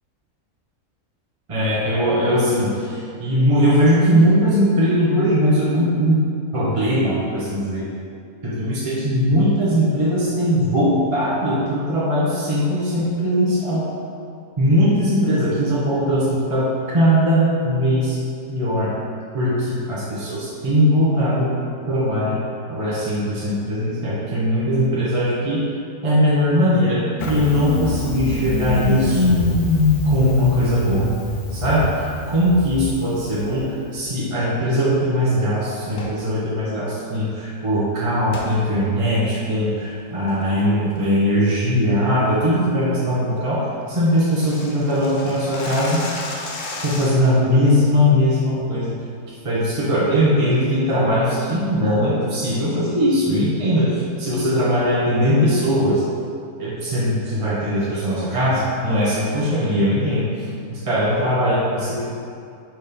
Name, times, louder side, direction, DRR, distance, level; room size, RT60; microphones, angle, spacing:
voice 1, 1.5-7.9 8.4-13.9 14.6-18.2 18.5-18.9 19.3-21.5 21.8-22.4 22.7-25.6 26.0-27.0 27.2-29.4 30.1-31.1 31.5-46.0 46.8-48.9 49.4-56.0 56.6-62.1, equal, 25° right, -8 dB, 0.9 m, -20 dB
Engine starting, 27.2-33.7, left 3 dB, 80° left, 1.2 m, -22 dB
sound 1, 35.9-36.2 38.3-38.5 39.0-39.1 39.6-39.9 40.3-40.6 41.0-41.2 41.6-41.7 42.1-42.3 42.7-42.8 43.1-43.2 43.4-43.5 43.7-47.4, left 2 dB, 65° left, 1.1 m, -33 dB
4.6 x 4.2 x 5.1 m, 2.4 s
omnidirectional pair, 1.5 m